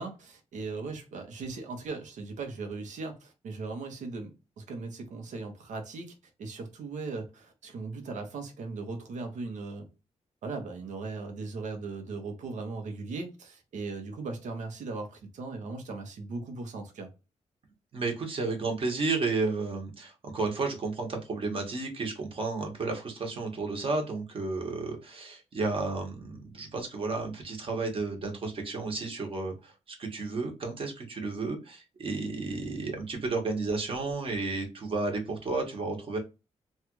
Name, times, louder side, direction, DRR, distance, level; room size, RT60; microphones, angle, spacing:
voice 1, 0.0-6.1 6.4-9.9 10.4-17.1, right 3 dB, 80° right, 0.9 m, -38 dB
voice 2, 17.9-36.2, right 3 dB, 45° right, 1.2 m, -32 dB
3.2 x 2.4 x 3.0 m
wide cardioid pair, 145°, 12 cm